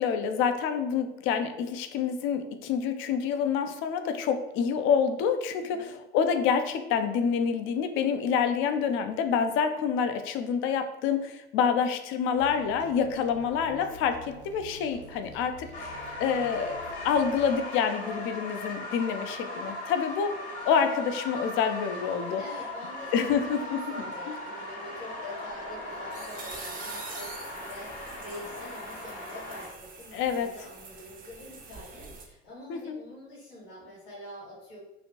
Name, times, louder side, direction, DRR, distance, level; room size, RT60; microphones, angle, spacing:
voice 1, 0.0-22.4 23.1-23.8 24.3-24.4 30.1-30.5 32.7-33.0, left 7 dB, 40° left, 7 dB, 0.4 m, -27 dB
voice 2, 5.6-5.9 22.4-34.8, left 1 dB, 60° left, -6 dB, 1.3 m, -45 dB
sound 1, 12.4-17.5, equal, 85° right, 0.5 m, -48 dB
sound 2, 15.7-29.7, left 1 dB, 80° left, 1.0 m, -38 dB
sound 3, 25.5-32.3, right 4 dB, 25° right, 0.6 m, -45 dB
3.0 x 2.4 x 2.8 m, 0.99 s
figure-of-eight pair, 65°, 32 cm